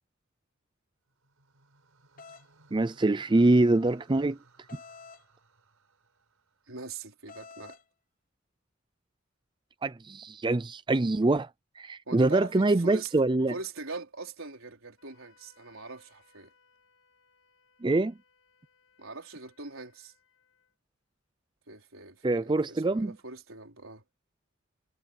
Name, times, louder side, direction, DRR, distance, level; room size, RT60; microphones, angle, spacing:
sound 1, 1.1-7.4, right 3 dB, 90° right, 5.3 m, -63 dB
sound 2, 2.2-2.5 4.7-5.2 7.3-7.8, left 4 dB, 40° left, 0.9 m, -48 dB
voice 1, 2.7-4.4 9.8-11.5 11.8-13.5 17.8-18.1 22.2-23.1, right 2 dB, 20° right, 0.4 m, -24 dB
voice 2, 6.7-7.8 12.1-13.1 13.5-16.5 19.0-20.1 21.7-24.0, right 3 dB, 75° right, 4.6 m, -42 dB
Wind instrument woodwind instrument, 15.0-20.7, left 5 dB, 75° left, 6.5 m, -67 dB
head